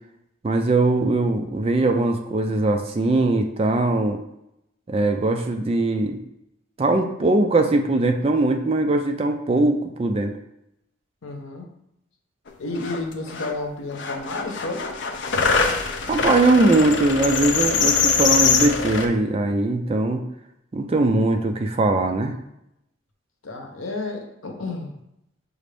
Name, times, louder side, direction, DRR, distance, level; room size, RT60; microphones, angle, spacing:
voice 1, 0.4-4.2 4.9-6.2 6.8-10.3 16.1-20.2 20.7-22.4, right 2 dB, 30° right, 5 dB, 0.3 m, -21 dB
voice 2, 11.2-11.7 12.6-14.9 23.4-24.9, left 2 dB, 80° left, 3 dB, 0.8 m, -31 dB
sound 1, 12.5-12.6 12.7-13.5 13.9-19.1, left 5 dB, 60° left, 0.5 m, -23 dB
6.3 x 2.5 x 3.3 m, 0.82 s
head